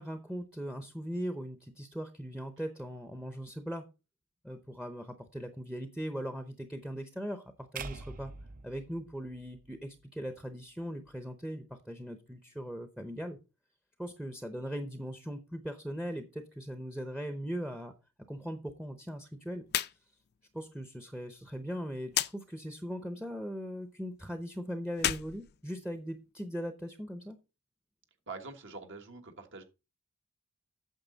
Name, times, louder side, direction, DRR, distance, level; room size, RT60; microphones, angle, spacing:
voice 1, 0.0-3.8 4.4-8.3 8.6-13.4 14.0-17.9 18.3-19.6 20.5-27.4, equal, 5° right, 8 dB, 0.7 m, -39 dB
sound 1, 7.8-10.0, right 4 dB, 40° right, 0.6 m, -45 dB
sound 2, 19.6-20.0 20.3-20.4 22.1-22.3 24.9-26.2, left 12 dB, 50° left, 0.4 m, -32 dB
voice 2, 28.3-29.6, right 4 dB, 65° right, 5 dB, 1.5 m, -44 dB
9.0 x 6.7 x 3.9 m, 0.28 s
head